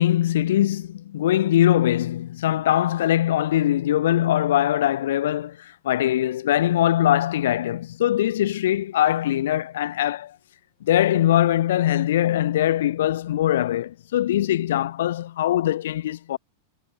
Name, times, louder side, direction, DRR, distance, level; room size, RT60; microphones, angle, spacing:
voice 1, 0.0-10.4 10.8-16.4, left 12 dB, 60° left, 0.6 m, -22 dB
figure-of-eight pair, 90°, 0 cm